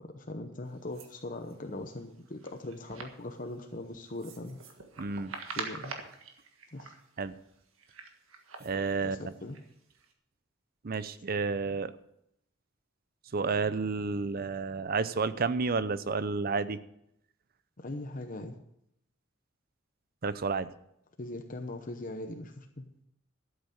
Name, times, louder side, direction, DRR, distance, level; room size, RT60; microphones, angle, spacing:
voice 1, 0.0-4.6 5.6-6.0 6.7-6.9 9.0-9.6 17.8-18.6 21.2-22.9, left 2 dB, 40° left, 5 dB, 0.9 m, -40 dB
sound 1, 0.7-10.1, right 4 dB, 80° right, 1.7 m, -46 dB
voice 2, 5.0-5.3 7.2-7.3 8.6-9.3 10.8-11.9 13.3-16.8 20.2-20.7, right 4 dB, 45° right, 14 dB, 0.6 m, -31 dB
12.5 x 8.0 x 6.6 m, 0.77 s
head